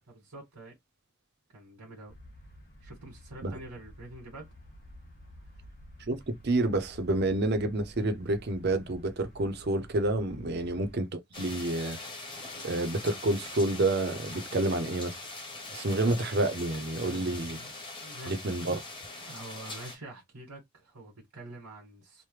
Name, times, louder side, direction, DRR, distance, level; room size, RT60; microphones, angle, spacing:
voice 1, 0.1-0.8 1.5-2.1 2.8-4.5 10.5-10.7 17.0-17.7 18.0-18.8 19.3-22.2, right 2 dB, 80° right, 1.4 m, -47 dB
sound 1, 2.1-10.9, left 1 dB, 40° left, 1.3 m, -51 dB
voice 2, 6.1-12.0 12.6-15.2 15.7-17.6 18.3-18.8, right 2 dB, 45° right, 0.5 m, -29 dB
sound 2, 11.3-20.0, left 2 dB, 20° left, 0.8 m, -42 dB
3.1 x 2.1 x 3.1 m
head